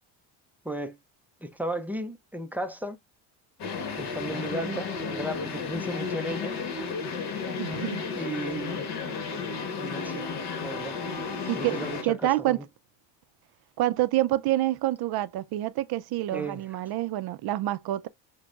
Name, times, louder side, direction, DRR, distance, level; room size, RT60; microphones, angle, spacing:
voice 1, 0.6-1.0 1.4-3.0 4.0-6.6 8.1-8.9 9.8-10.3 10.6-11.0 11.6-12.6 16.3-16.7, right 1 dB, 5° right, 0.4 m, -34 dB
sound 1, 3.6-12.0, left 5 dB, 55° left, 1.3 m, -33 dB
voice 2, 7.6-8.1 11.5-11.8 12.0-12.6 13.8-18.1, right 15 dB, 55° right, 0.5 m, -27 dB
6.0 x 2.2 x 2.4 m
cardioid pair, 110°, 46 cm